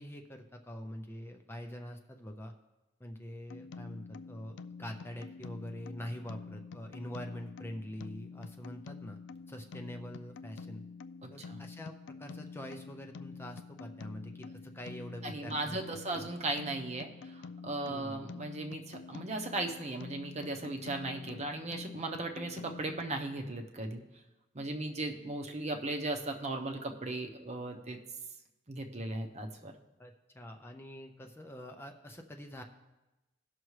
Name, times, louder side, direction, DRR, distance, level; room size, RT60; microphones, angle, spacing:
voice 1, 0.0-2.5 3.0-9.2 9.5-10.8 11.3-15.8 16.2-16.3 17.9-18.3 30.0-32.6, equal, 15° left, 4 dB, 0.6 m, -44 dB
sound 1, 3.5-23.0, left 4 dB, 80° left, 0.4 m, -48 dB
voice 2, 11.2-11.6 15.2-24.0 24.5-28.0 28.7-29.7, right 2 dB, 40° right, 3 dB, 0.9 m, -37 dB
17.5 x 6.1 x 3.2 m, 1.0 s
head